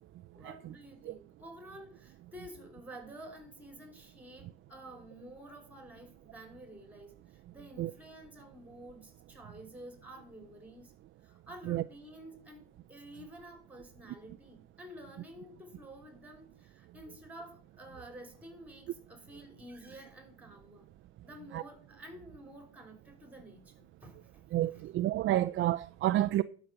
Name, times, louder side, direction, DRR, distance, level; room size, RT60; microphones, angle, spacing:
voice 1, 0.3-10.9 11.2-20.9 21.2-24.8, right 1 dB, 5° right, 3.5 m, -51 dB
voice 2, 24.5-26.4, right 14 dB, 40° right, 0.4 m, -29 dB
12.0 x 6.0 x 6.3 m
supercardioid pair, 110°, 33 cm